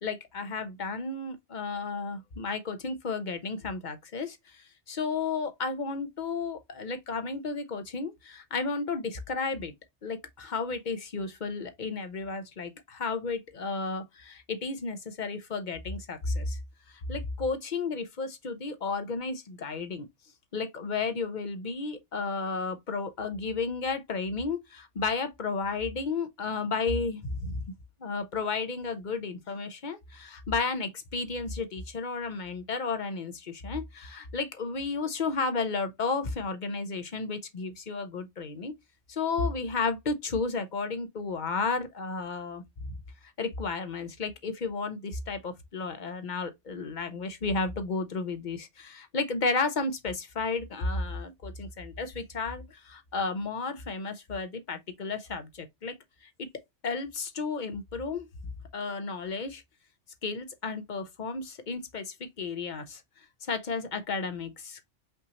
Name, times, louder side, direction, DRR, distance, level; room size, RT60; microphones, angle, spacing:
voice 1, 0.0-9.7 10.0-16.6 17.1-20.1 20.5-27.6 28.0-38.7 39.1-43.0 43.4-56.0 56.4-56.5 56.8-58.3 58.7-59.6 60.2-63.0 63.4-64.9, left 4 dB, 45° left, 0.8 m, -33 dB
5.5 x 2.7 x 2.9 m
omnidirectional pair, 1.2 m